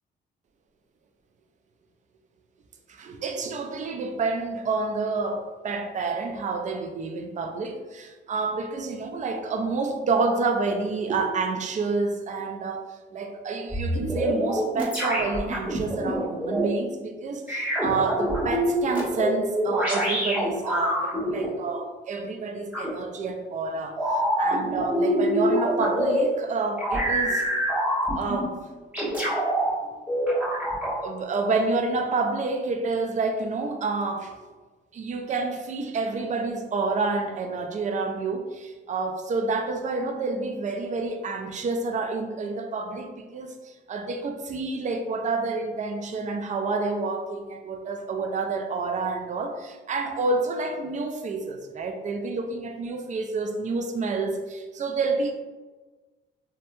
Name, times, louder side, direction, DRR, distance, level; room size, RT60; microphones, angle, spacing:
voice 1, 2.9-27.5 28.1-28.6 29.8-30.0 31.0-34.4 34.9-55.3, right 3 dB, 40° right, 5 dB, 0.4 m, -29 dB
sound 1, 13.7-16.7 17.5-21.5 22.7-22.9 24.0-26.2 26.7-28.4 28.9-29.7 30.1-31.0, equal, 5° right, 1.1 m, -25 dB
3.0 x 2.2 x 2.6 m, 1.3 s
cardioid pair, 90°, 20 cm